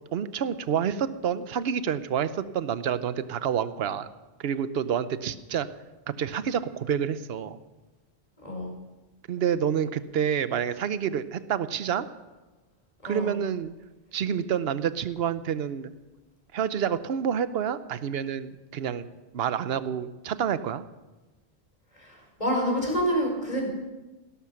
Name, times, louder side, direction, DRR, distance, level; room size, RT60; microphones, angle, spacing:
voice 1, 0.0-4.1 4.4-5.7 6.2-7.6 9.3-12.1 13.0-13.7 14.1-15.9 16.5-19.1 19.3-20.8, right 8 dB, 65° right, 13 dB, 0.9 m, -28 dB
voice 2, 8.4-8.8 13.0-13.3 21.9-23.7, equal, 35° left, -1 dB, 4.9 m, -28 dB
17.0 x 13.0 x 5.9 m, 1.1 s
omnidirectional pair, 1.1 m